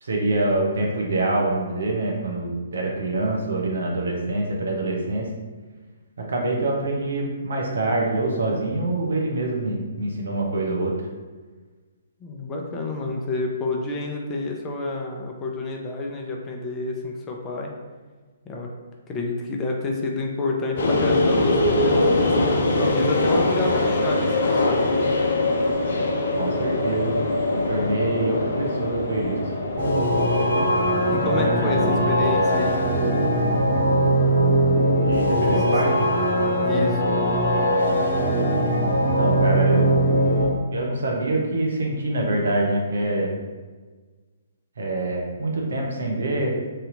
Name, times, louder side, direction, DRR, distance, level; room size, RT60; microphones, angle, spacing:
voice 1, 0.0-5.3 6.2-10.9 26.4-29.5 31.2-32.0 34.9-36.0 39.2-39.9 40.7-43.4 44.8-46.5, right 2 dB, 70° right, -1 dB, 0.9 m, -25 dB
voice 2, 12.2-17.7 18.5-18.7 19.1-25.1 31.1-32.8 35.5-35.8 36.6-37.1, left 2 dB, 20° left, 0 dB, 0.6 m, -29 dB
sound 1, 20.8-36.0, left 2 dB, 60° left, 0.7 m, -24 dB
sound 2, 29.8-40.4, right 1 dB, 50° right, 1.3 m, -20 dB
3.2 x 2.8 x 3.9 m, 1.4 s
figure-of-eight pair, 130°, 0 cm